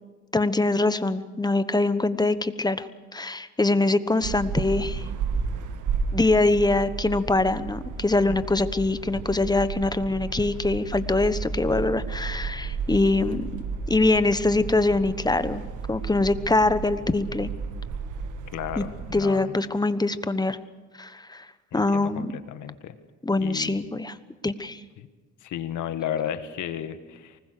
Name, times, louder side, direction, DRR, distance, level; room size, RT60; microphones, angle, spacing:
voice 1, 0.3-2.9 3.1-5.0 6.1-13.5 13.9-15.6 15.9-17.5 18.8-18.9 19.1-20.6 21.0-21.5 21.7-22.3 23.2-24.2 24.4-24.8, left 2 dB, 15° left, 13 dB, 1.1 m, -23 dB
sound 1, 4.2-19.1, right 5 dB, 80° right, 1.6 m, -33 dB
voice 2, 18.5-19.6 21.7-22.9 23.4-23.8 25.0-25.1 25.4-27.4, left 10 dB, 75° left, 10 dB, 1.6 m, -33 dB
24.5 x 20.5 x 6.8 m, 1.3 s
cardioid pair, 90°, 30 cm